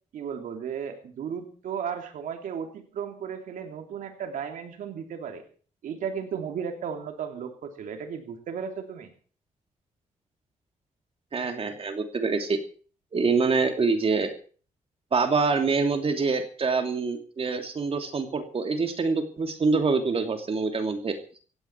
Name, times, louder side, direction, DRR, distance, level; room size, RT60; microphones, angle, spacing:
voice 1, 0.1-5.4 5.8-9.1, right 7 dB, 85° right, 5 dB, 3.1 m, -35 dB
voice 2, 11.3-12.6 13.1-14.3 15.1-21.2, right 4 dB, 45° right, 5 dB, 2.9 m, -25 dB
18.0 x 16.0 x 4.7 m, 0.42 s
cardioid pair, 90°, 13 cm